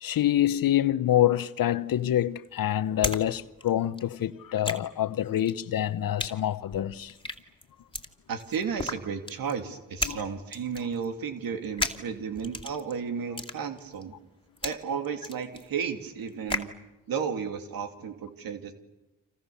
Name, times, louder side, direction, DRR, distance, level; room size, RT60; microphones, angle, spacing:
voice 1, 0.0-7.1 10.0-10.2, left 12 dB, 75° left, 1.0 m, -26 dB
sound 1, 1.8-3.3 3.5-16.8, left 2 dB, 15° left, 2.7 m, -36 dB
voice 2, 8.3-14.2 14.6-16.7 17.1-18.7, right 6 dB, 90° right, 2.7 m, -33 dB
29.5 x 27.0 x 7.0 m
cardioid pair, 55°, 34 cm